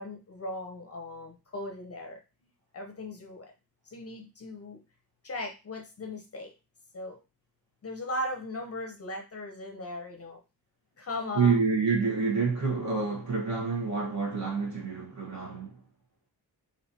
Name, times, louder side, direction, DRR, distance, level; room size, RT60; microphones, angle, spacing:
voice 1, 0.0-2.2 2.7-3.5 3.9-4.8 5.2-6.5 6.9-7.2 7.8-10.4 11.0-11.6, left 1 dB, 40° left, 0.6 m, -38 dB
voice 2, 11.3-15.7, right 5 dB, 45° right, 1.4 m, -28 dB
3.2 x 2.8 x 2.7 m
wide cardioid pair, 140°, 39 cm